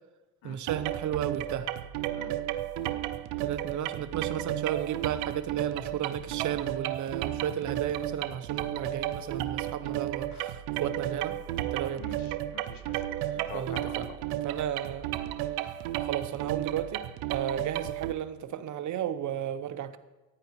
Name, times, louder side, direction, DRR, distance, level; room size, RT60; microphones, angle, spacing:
voice 1, 0.4-1.7 3.4-11.4 11.6-12.1 13.5-14.1 14.4-15.1 16.0-20.0, right 9 dB, 55° right, 12 dB, 0.8 m, -34 dB
sound 1, 0.7-18.1, right 13 dB, 85° right, 0.6 m, -33 dB
voice 2, 12.5-14.2, left 7 dB, 65° left, 10 dB, 1.1 m, -45 dB
14.5 x 10.5 x 3.1 m, 1.1 s
cardioid pair, 105°, 37 cm